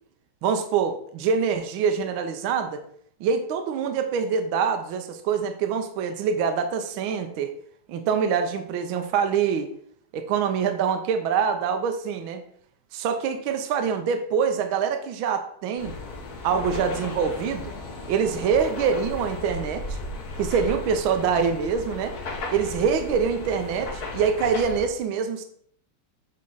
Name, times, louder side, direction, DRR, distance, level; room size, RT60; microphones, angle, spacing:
voice 1, 0.4-2.8 3.2-7.5 7.9-9.7 10.1-12.4 12.9-15.9 16.4-17.7 18.1-20.0 20.4-22.1 22.5-25.4, right 6 dB, 75° right, 7 dB, 1.4 m, -25 dB
sound 1, 15.8-24.9, left 3 dB, 55° left, 1.3 m, -35 dB
7.4 x 4.4 x 3.9 m, 0.65 s
omnidirectional pair, 2.4 m